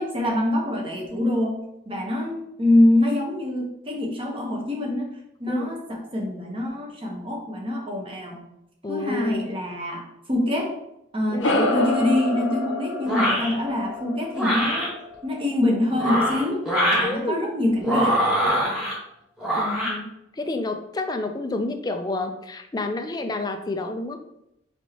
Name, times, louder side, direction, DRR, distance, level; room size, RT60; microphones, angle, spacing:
voice 1, 0.0-1.6 1.9-5.1 5.4-8.4 8.9-10.8 11.1-14.9 15.2-16.6 16.9-18.2, left 1 dB, 25° right, 0 dB, 0.9 m, -25 dB
voice 2, 8.8-9.5 11.3-11.5 17.0-17.5 18.8-19.0 19.5-24.2, left 2 dB, 20° left, 6 dB, 0.4 m, -29 dB
sound 1, 11.4-16.2, left 2 dB, 85° left, 0.8 m, -28 dB
sound 2, 13.0-13.5 14.3-14.9 15.9-17.1 17.8-18.9 19.4-19.9, equal, 5° right, 1.3 m, -23 dB
4.5 x 4.2 x 2.8 m, 0.80 s
head